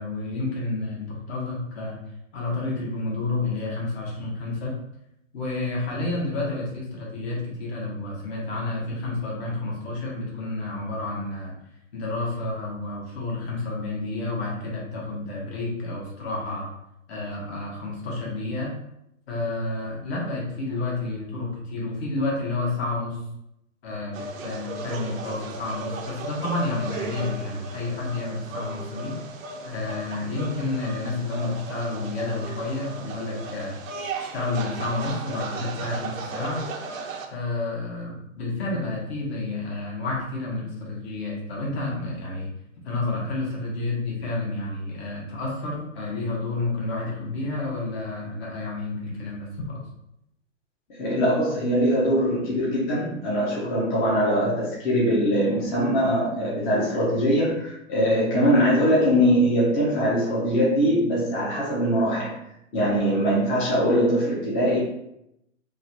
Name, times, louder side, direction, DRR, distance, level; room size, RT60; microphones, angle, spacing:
voice 1, 0.0-2.0 2.3-4.7 5.3-11.5 11.9-16.7 17.1-18.7 19.3-23.2 23.8-29.2 29.6-33.7 34.2-36.6 37.3-42.5 42.8-49.8, left 2 dB, 50° left, -3 dB, 1.3 m, -30 dB
sound 1, 24.1-37.3, right 3 dB, 75° right, 0.6 m, -36 dB
voice 2, 50.9-62.3 62.7-64.8, equal, 20° left, -7 dB, 0.6 m, -22 dB
3.1 x 2.3 x 2.7 m, 0.81 s
hypercardioid pair, 130°, 40 cm